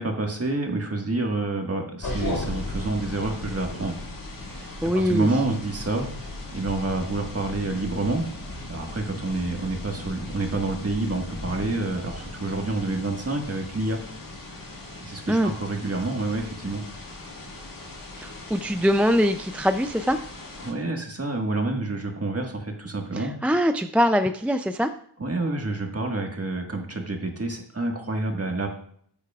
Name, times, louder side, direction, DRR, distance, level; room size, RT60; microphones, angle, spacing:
voice 1, 0.0-4.0 4.4-6.1 6.5-8.2 8.7-14.0 15.0-16.8 20.6-23.3 25.2-28.7, right 2 dB, 35° right, 2 dB, 1.6 m, -28 dB
sound 1, 2.0-20.7, left 2 dB, 50° left, 1.8 m, -37 dB
voice 2, 4.8-5.3 15.3-15.5 18.2-20.2 23.1-24.9, equal, 5° right, 8 dB, 0.3 m, -23 dB
12.0 x 8.0 x 2.4 m, 0.62 s
wide cardioid pair, 105°, 42 cm